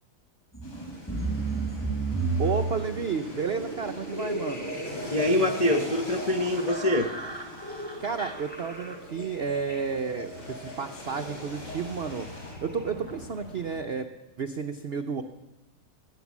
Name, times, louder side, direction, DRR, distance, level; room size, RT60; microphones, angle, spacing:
sound 1, 0.5-13.2, right 2 dB, 5° left, 1.7 m, -35 dB
sound 2, 0.6-12.5, left 1 dB, 70° left, 4.8 m, -45 dB
sound 3, 1.2-13.8, left 1 dB, 90° left, 3.7 m, -49 dB
voice 1, 2.4-4.7 8.0-14.1 14.4-15.2, right 6 dB, 65° right, 7 dB, 0.6 m, -32 dB
voice 2, 5.1-7.1, left 1 dB, 45° left, 2 dB, 0.5 m, -24 dB
21.5 x 8.9 x 7.2 m, 1.0 s
omnidirectional pair, 1.9 m